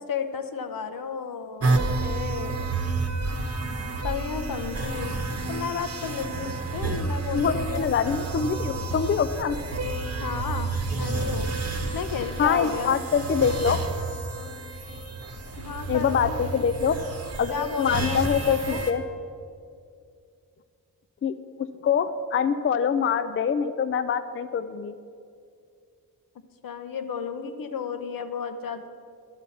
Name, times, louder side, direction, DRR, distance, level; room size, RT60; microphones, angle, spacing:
voice 1, 0.1-2.7 4.0-5.2 5.5-7.9 10.2-11.5 11.9-13.0 15.6-16.7 17.5-18.8 26.6-28.9, left 6 dB, 70° left, 8 dB, 0.8 m, -33 dB
sound 1, 1.6-18.9, right 3 dB, 45° right, 1.0 m, -30 dB
voice 2, 7.3-9.6 12.4-13.8 15.9-17.0 17.4-19.0 21.2-24.9, left 7 dB, 40° left, 11 dB, 0.4 m, -25 dB
11.5 x 4.4 x 7.0 m, 2.3 s
cardioid pair, 75°, 35 cm